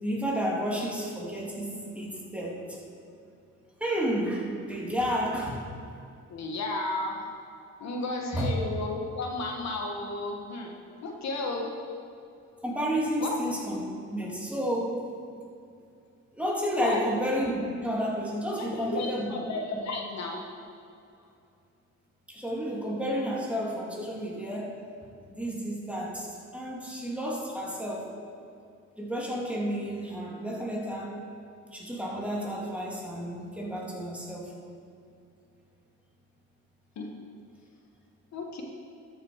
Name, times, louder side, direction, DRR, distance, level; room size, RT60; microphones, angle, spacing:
voice 1, 0.0-2.8 3.8-5.6 7.8-8.1 8.3-8.5 12.6-13.8 14.1-15.0 16.3-19.3 19.7-19.9 22.3-24.7 25.3-28.1 29.0-31.2 31.7-34.5, equal, 5° right, -3 dB, 2.3 m, -31 dB
voice 2, 6.3-7.2 7.8-10.7 11.0-11.7 13.2-13.4 16.8-17.1 18.6-20.4 37.0-37.1 38.3-38.6, left 2 dB, 65° left, 1 dB, 1.4 m, -33 dB
13.0 x 6.5 x 4.7 m, 2.5 s
cardioid pair, 90°, 30 cm